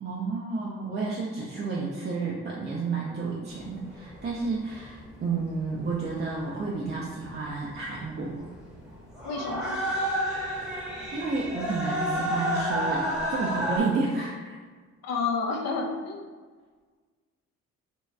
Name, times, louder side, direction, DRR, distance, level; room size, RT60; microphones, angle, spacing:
voice 1, 0.0-8.4 11.1-14.5, right 4 dB, 35° right, -4 dB, 0.4 m, -31 dB
sound 1, 3.5-13.8, equal, ahead, 0.8 m, -31 dB
voice 2, 9.2-9.8 15.0-16.2, left 4 dB, 60° left, 1 dB, 0.6 m, -30 dB
2.5 x 2.2 x 3.2 m, 1.5 s
cardioid pair, 90°, 30 cm